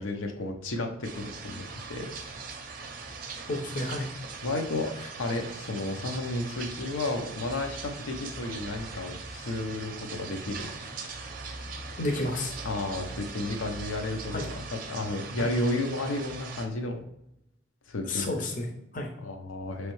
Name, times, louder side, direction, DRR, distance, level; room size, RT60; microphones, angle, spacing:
voice 1, 0.0-2.1 4.4-4.9 5.2-10.7 12.6-17.0 17.9-18.3 19.2-19.9, left 2 dB, 85° left, 3 dB, 0.6 m, -32 dB
sound 1, 1.0-16.7, right 4 dB, 45° right, 0.6 m, -40 dB
voice 2, 3.5-4.1 12.0-12.5 14.3-14.5 15.4-15.5 18.0-19.1, left 2 dB, 40° left, 3 dB, 0.6 m, -31 dB
5.5 x 3.2 x 3.0 m, 0.83 s
head